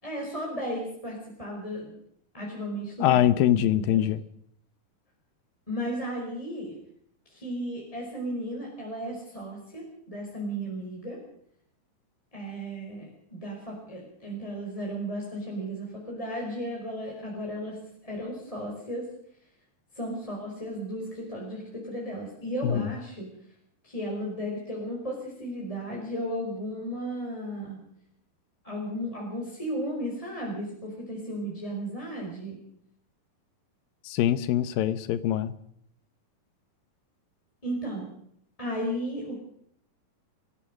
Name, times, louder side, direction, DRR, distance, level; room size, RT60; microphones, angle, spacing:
voice 1, 0.0-1.9 2.3-3.3 3.6-4.0 5.7-6.7 7.3-11.2 12.3-17.8 18.0-19.1 19.9-23.3 23.8-27.8 28.6-32.6 37.6-38.1 38.6-39.4, equal, 10° left, -3 dB, 5.1 m, -34 dB
voice 2, 3.0-4.2 22.6-22.9 34.0-35.5, left 11 dB, 90° left, 14 dB, 2.8 m, -23 dB
25.5 x 16.5 x 6.5 m, 0.69 s
omnidirectional pair, 4.0 m